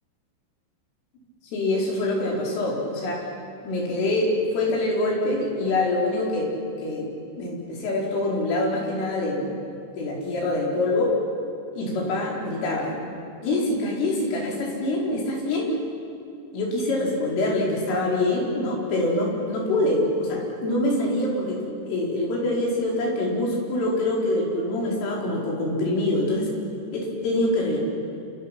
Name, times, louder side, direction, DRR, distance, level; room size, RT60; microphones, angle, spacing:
voice 1, 1.5-3.2 3.6-6.5 6.8-7.1 7.4-9.5 10.0-11.1 11.7-13.1 13.4-15.7 16.5-26.5 26.9-27.8, left 2 dB, 80° left, -3 dB, 7.2 m, -25 dB
29.0 x 28.0 x 6.0 m, 2.5 s
omnidirectional pair, 5.7 m